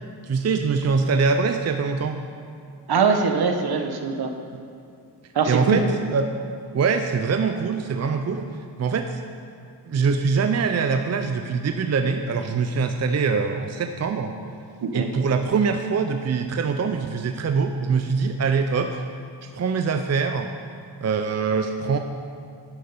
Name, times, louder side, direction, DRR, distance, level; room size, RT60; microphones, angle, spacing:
voice 1, 0.2-2.2 5.5-5.8 6.1-6.3 6.7-8.5 8.8-9.2 9.9-14.3 14.9-19.0 19.4-20.5 21.0-22.0, right 5 dB, 40° right, 6 dB, 0.6 m, -23 dB
voice 2, 2.9-4.3 5.3-5.8 14.8-15.1, right 5 dB, 60° right, 6 dB, 1.1 m, -22 dB
11.5 x 6.3 x 5.4 m, 2.4 s
cardioid pair, 60°, 43 cm